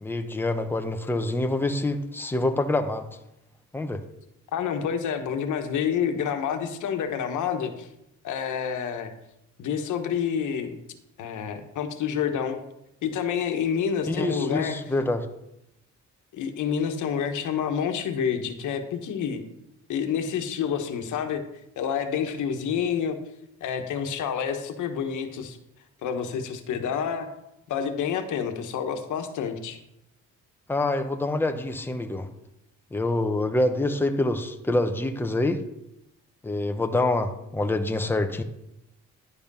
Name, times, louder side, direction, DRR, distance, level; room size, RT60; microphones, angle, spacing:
voice 1, 0.0-3.1 3.7-4.0 14.1-15.3 30.7-32.3 32.9-35.6 36.4-38.4, left 2 dB, 5° left, 6 dB, 0.8 m, -26 dB
voice 2, 4.5-7.9 8.2-9.1 9.6-10.7 11.2-12.6 13.0-14.8 16.3-19.4 19.9-21.4 21.8-23.2 23.6-25.6 26.0-27.3 27.7-29.8, left 7 dB, 80° left, 6 dB, 1.2 m, -28 dB
10.5 x 5.1 x 5.4 m, 0.85 s
cardioid pair, 90°, 30 cm